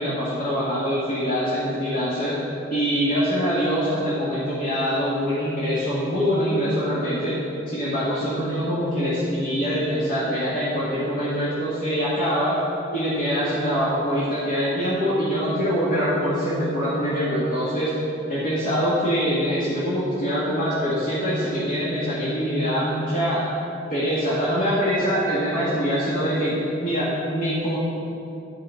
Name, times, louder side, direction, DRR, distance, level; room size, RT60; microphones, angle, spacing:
voice 1, 0.0-2.4 2.7-7.4 7.7-12.6 12.9-17.9 18.3-23.4 23.9-27.8, equal, 50° left, -10 dB, 2.0 m, -24 dB
11.0 x 5.6 x 6.8 m, 2.8 s
head